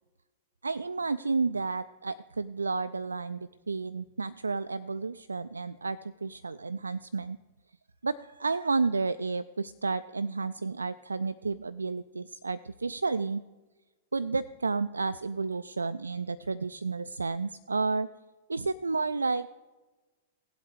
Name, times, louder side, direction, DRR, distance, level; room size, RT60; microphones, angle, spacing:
voice 1, 0.6-7.4 8.0-13.4 14.1-18.1 18.5-19.5, right 4 dB, 75° right, 15 dB, 0.3 m, -31 dB
17.0 x 8.0 x 4.9 m, 1.2 s
figure-of-eight pair, 100°, 0 cm